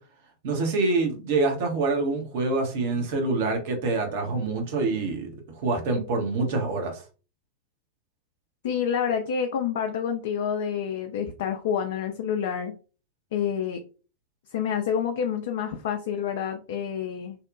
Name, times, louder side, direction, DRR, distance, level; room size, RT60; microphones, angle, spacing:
voice 1, 0.4-5.3 5.6-7.0, right 3 dB, 50° right, 0.7 m, -26 dB
voice 2, 8.6-12.7 13.3-13.8 14.5-17.4, left 8 dB, 55° left, 0.3 m, -28 dB
2.8 x 2.1 x 2.4 m
figure-of-eight pair, 90°, 0 cm